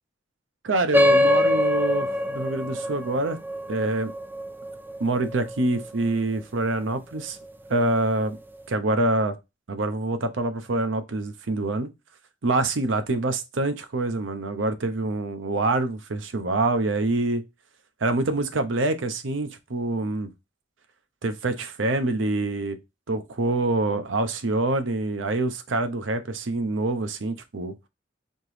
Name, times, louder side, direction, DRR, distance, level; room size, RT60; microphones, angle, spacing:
voice 1, 0.6-3.4 3.7-4.1 5.0-7.4 7.7-8.4 8.7-9.4 9.7-11.9 12.4-17.4 18.0-20.3 21.2-22.8 23.1-27.7, right 2 dB, 85° right, 0.7 m, -26 dB
sound 1, 0.9-5.9, left 1 dB, 10° right, 0.4 m, -23 dB
4.3 x 2.9 x 3.2 m
head